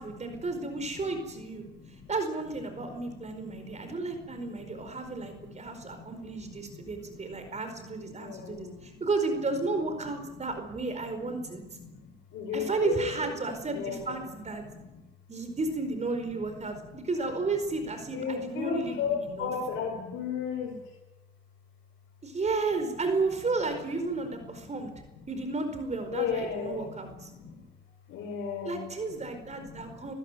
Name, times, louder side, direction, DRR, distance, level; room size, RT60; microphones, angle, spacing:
voice 1, 0.0-1.6 2.1-11.6 12.5-14.6 15.3-19.5 22.2-24.9 25.3-27.3 28.6-30.1, right 3 dB, 35° right, 7 dB, 4.7 m, -33 dB
voice 2, 1.6-2.1 3.3-6.2 6.7-7.0 7.2-7.6 8.1-9.0 11.8-13.1 13.7-14.2 14.6-14.8 18.1-20.8 26.1-27.6 28.1-28.9 29.7-30.1, left 6 dB, 80° left, 0 dB, 4.6 m, -36 dB
23.5 x 15.0 x 9.2 m, 1.0 s
cardioid pair, 90°, 20 cm